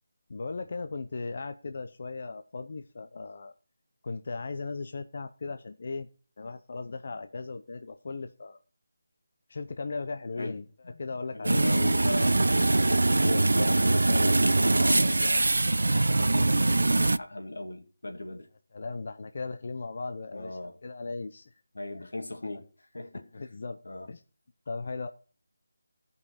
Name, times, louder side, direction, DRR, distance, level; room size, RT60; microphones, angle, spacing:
voice 1, 0.3-3.5 4.0-6.1 6.4-8.6 9.5-11.7 18.7-21.4 23.3-23.8 24.1-24.2 24.7-25.1, left 3 dB, 35° left, 0.6 m, -37 dB
voice 2, 10.8-15.5 16.1-18.5 20.3-20.8 21.7-22.7 22.9-23.3 23.8-24.1, left 2 dB, 90° left, 2.3 m, -38 dB
sound 1, 11.4-17.2, right 2 dB, 85° right, 0.4 m, -23 dB
14.5 x 5.5 x 4.9 m
figure-of-eight pair, 180°, 0 cm